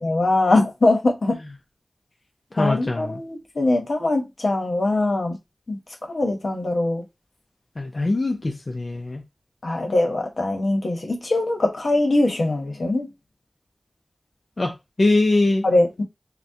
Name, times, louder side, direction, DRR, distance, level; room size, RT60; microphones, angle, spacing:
voice 1, 0.0-1.4 2.6-5.4 5.7-5.8 6.1-7.0 9.6-13.1 15.6-16.0, left 2 dB, 80° left, 1.0 m, -22 dB
voice 2, 2.5-3.2 7.8-9.2 14.6-15.7, left 2 dB, 55° left, 0.5 m, -22 dB
5.9 x 2.2 x 2.7 m
wide cardioid pair, 55°, 0 cm